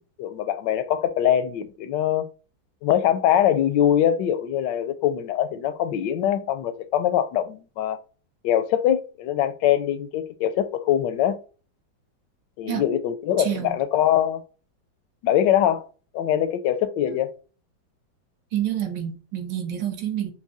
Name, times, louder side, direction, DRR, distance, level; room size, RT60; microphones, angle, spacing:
voice 1, 0.0-2.3 2.8-8.0 8.4-11.4 12.6-14.4 15.2-15.9 16.1-17.3, left 10 dB, 75° left, 1.1 m, -23 dB
voice 2, 13.4-13.8 17.0-17.2 18.5-20.3, right 10 dB, 70° right, 1.6 m, -28 dB
6.0 x 2.2 x 4.0 m
omnidirectional pair, 2.1 m